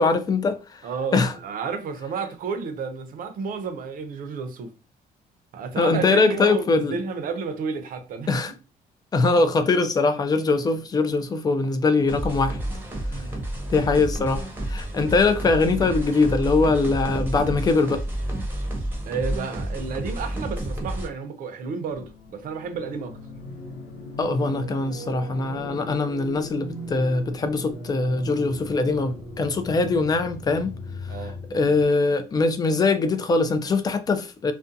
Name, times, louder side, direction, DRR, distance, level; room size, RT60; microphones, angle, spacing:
voice 1, 0.0-0.8 1.1-1.3 5.8-7.0 8.3-8.5 9.1-12.6 13.2-13.3 13.7-18.1 24.2-30.8 31.1-31.2 31.5-34.5, left 3 dB, 25° left, 0.3 m, -22 dB
voice 2, 0.8-4.7 5.5-8.3 13.1-13.4 19.1-23.2 31.1-31.4, right 5 dB, 60° right, 0.6 m, -31 dB
sound 1, 12.1-21.1, right 1 dB, 15° right, 0.7 m, -30 dB
sound 2, 21.9-31.8, left 1 dB, 80° left, 0.9 m, -38 dB
2.4 x 2.2 x 2.6 m
cardioid pair, 135°, 16 cm